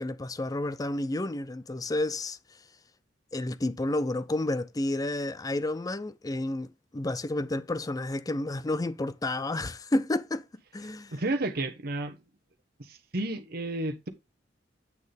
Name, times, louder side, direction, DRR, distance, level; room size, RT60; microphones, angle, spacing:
voice 1, 0.0-2.4 3.3-10.4 10.7-11.2, left 2 dB, 20° left, 0.5 m, -30 dB
voice 2, 11.1-12.2 12.8-14.1, right 2 dB, 55° right, 1.2 m, -32 dB
8.5 x 6.4 x 3.4 m
head